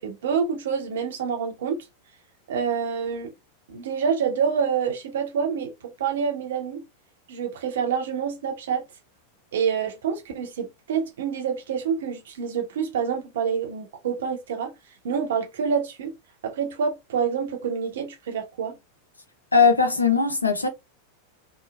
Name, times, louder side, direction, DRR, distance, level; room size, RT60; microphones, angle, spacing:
voice 1, 0.0-1.9 2.5-3.3 3.7-6.8 7.3-8.8 9.5-14.7 15.0-16.2 16.4-18.8, right 6 dB, 60° right, 0.8 m, -27 dB
voice 2, 19.5-20.7, left 5 dB, 80° left, 0.6 m, -19 dB
2.9 x 2.0 x 2.3 m
figure-of-eight pair, 90°, 0 cm